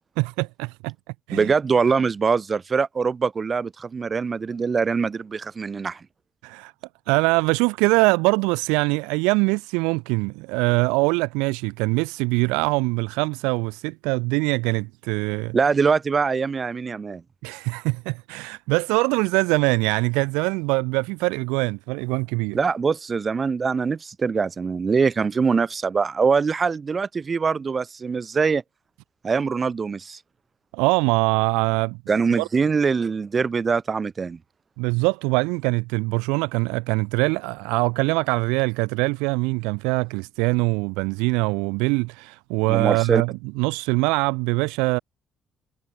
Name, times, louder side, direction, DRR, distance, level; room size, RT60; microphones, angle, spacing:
voice 1, 0.2-0.9 1.3-1.5 6.4-6.7 7.1-15.6 17.4-22.6 30.7-32.0 32.4-32.5 34.8-45.0, right 28 dB, 75° right, 1.9 m, -23 dB
voice 2, 1.3-6.0 15.5-17.2 22.5-28.6 29.2-30.2 32.1-34.4 42.7-43.2, right 5 dB, 40° right, 3.3 m, -23 dB
hypercardioid pair, 50°, 0 cm